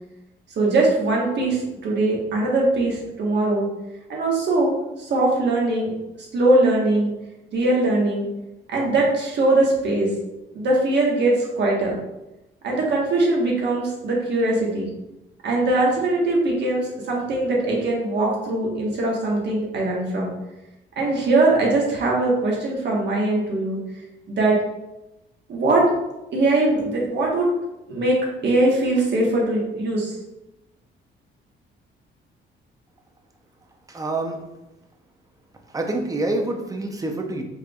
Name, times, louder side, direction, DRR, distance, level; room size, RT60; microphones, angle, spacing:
voice 1, 0.6-3.7 4.1-5.9 6.3-7.1 7.5-8.3 8.7-10.1 10.5-12.0 12.6-14.9 15.4-20.3 21.0-23.8 24.3-24.6 25.5-25.8 26.3-27.5 27.9-28.2 28.4-30.1, right 2 dB, 60° right, -2 dB, 1.3 m, -21 dB
voice 2, 33.9-34.4 35.7-37.4, right 2 dB, 15° right, 3 dB, 0.7 m, -26 dB
4.7 x 3.3 x 2.4 m, 0.95 s
cardioid pair, 90°, 20 cm